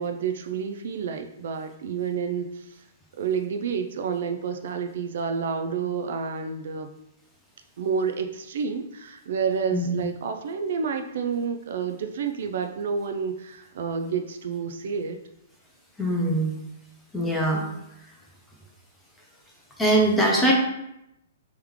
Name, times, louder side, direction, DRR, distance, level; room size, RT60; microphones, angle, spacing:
voice 1, 0.0-2.7 3.2-6.9 7.8-15.2, right 6 dB, 55° right, 6 dB, 0.3 m, -29 dB
voice 2, 16.0-16.5 17.1-17.6 19.8-20.5, right 1 dB, 5° left, -2 dB, 0.6 m, -22 dB
3.5 x 3.1 x 3.5 m, 0.84 s
hypercardioid pair, 170°, 0 cm